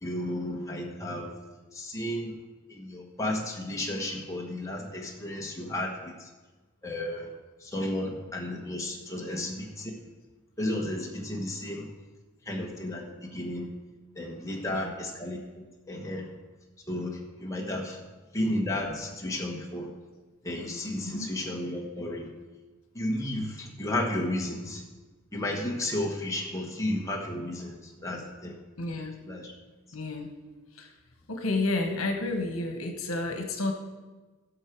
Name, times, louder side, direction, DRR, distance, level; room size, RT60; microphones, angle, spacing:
voice 1, 0.0-1.3 1.7-2.3 2.7-6.1 6.8-7.3 7.6-9.9 10.6-11.9 12.5-13.7 14.2-16.3 16.9-18.0 18.3-19.9 20.4-22.3 22.9-24.8 25.3-27.8 28.0-28.6 29.3-29.5, left 1 dB, 15° left, -1 dB, 1.4 m, -33 dB
voice 2, 14.5-14.9 21.0-21.3 28.8-29.2 29.9-30.3 30.7-30.9 31.3-33.7, left 2 dB, 80° left, 5 dB, 1.3 m, -31 dB
16.5 x 6.4 x 4.7 m, 1.2 s
head